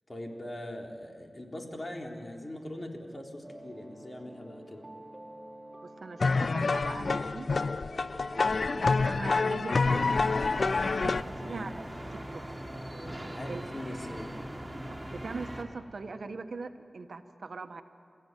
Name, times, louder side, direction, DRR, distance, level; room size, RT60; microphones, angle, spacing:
voice 1, 0.1-4.8 8.5-8.8 11.4-11.7 13.3-14.4, left 1 dB, 40° left, 1 dB, 3.6 m, -41 dB
sound 1, 3.4-14.3, right 1 dB, 35° right, 4.5 m, -49 dB
voice 2, 5.8-7.6 8.1-10.2 10.5-12.4 13.5-13.6 14.8-17.8, right 3 dB, 80° right, 8 dB, 1.2 m, -41 dB
sound 2, 6.2-11.2, left 4 dB, 70° left, 0.5 m, -27 dB
sound 3, 9.8-15.6, equal, 15° right, 3.1 m, -41 dB
28.5 x 15.5 x 9.3 m, 2.2 s
cardioid pair, 50°, 0 cm